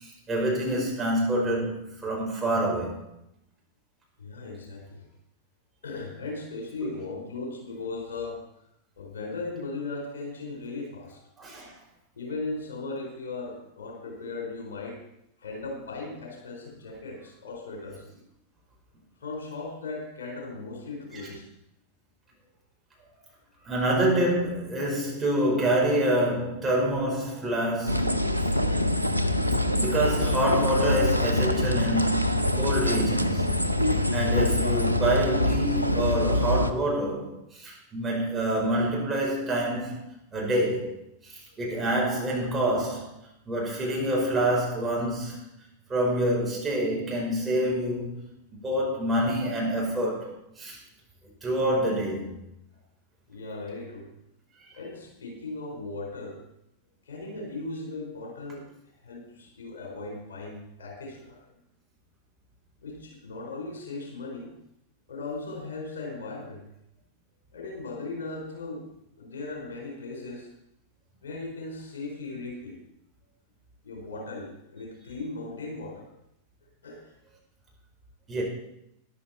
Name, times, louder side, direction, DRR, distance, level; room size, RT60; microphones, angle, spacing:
voice 1, 0.0-3.1 11.4-11.7 23.6-28.2 29.5-33.5 34.1-40.0 40.3-40.9 41.2-43.1 43.5-45.4 45.9-48.2 48.5-50.8 51.4-52.3 54.6-54.7 78.3-78.4, right 1 dB, 15° right, -3 dB, 5.1 m, -27 dB
voice 2, 4.2-5.0 5.8-8.4 9.0-11.2 12.2-15.0 15.4-18.0 19.2-21.4 53.3-54.1 54.8-56.4 57.0-58.7 59.0-61.4 62.8-64.5 65.1-66.6 67.5-68.8 69.2-70.5 71.2-72.8 73.8-76.1 76.8-77.2, left 3 dB, 65° left, 1 dB, 4.3 m, -37 dB
sound 1, 27.9-36.7, left 1 dB, 90° left, 0.7 m, -25 dB
13.5 x 11.5 x 4.3 m, 0.79 s
figure-of-eight pair, 90°, 0 cm